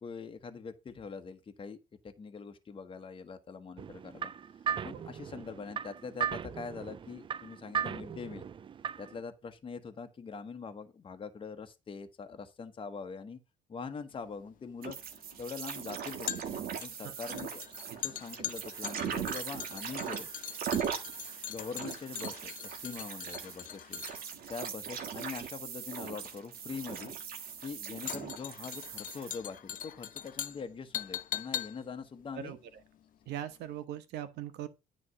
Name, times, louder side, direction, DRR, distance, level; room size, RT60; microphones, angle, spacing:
voice 1, 0.0-1.8 2.0-4.3 4.8-8.4 9.0-13.4 13.7-15.0 15.4-16.4 16.8-17.6 18.0-20.3 21.5-24.0 24.5-27.1 27.6-32.6, left 5 dB, 30° left, 1.2 m, -43 dB
sound 1, 3.8-9.2, right 8 dB, 30° right, 0.4 m, -37 dB
sound 2, 14.1-33.4 33.7-33.8, left 11 dB, 50° left, 0.7 m, -42 dB
sound 3, 14.8-29.3, right 8 dB, 60° right, 1.6 m, -40 dB
voice 2, 32.3-32.8 33.3-34.7, right 11 dB, 80° right, 1.2 m, -40 dB
9.7 x 3.3 x 6.9 m
cardioid pair, 110°, 17 cm